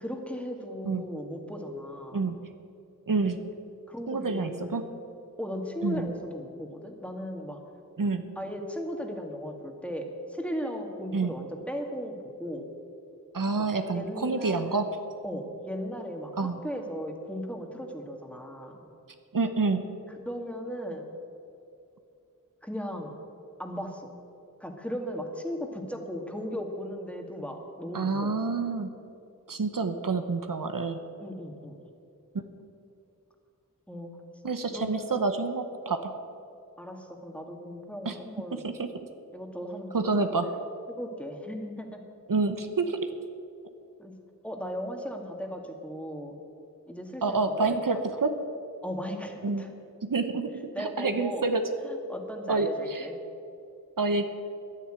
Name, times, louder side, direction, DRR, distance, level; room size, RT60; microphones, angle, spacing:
voice 1, 0.0-2.2 3.9-4.9 5.4-7.6 8.4-12.7 13.6-14.8 15.2-18.8 20.3-21.1 22.6-23.2 23.6-24.1 24.6-28.4 31.2-31.8 33.9-34.1 34.7-35.1 36.8-38.6 39.3-40.5 41.0-42.0 44.0-44.1 44.4-46.4 46.9-47.7 48.8-49.7 50.7-51.5 51.8-53.2, equal, 5° left, 2 dB, 2.1 m, -37 dB
voice 2, 3.1-3.4 4.1-4.8 5.8-6.1 8.0-8.2 11.1-11.3 13.3-15.0 16.4-16.6 19.3-19.8 27.9-28.9 29.5-31.0 34.4-36.1 38.0-38.2 38.6-38.9 39.9-40.5 42.3-43.0 47.2-48.4 49.4-49.6 50.0-50.5 50.8-51.7 52.5-53.1 54.0-54.3, right 3 dB, 75° right, 8 dB, 0.9 m, -28 dB
11.0 x 10.0 x 9.1 m, 2.6 s
wide cardioid pair, 50°, 33 cm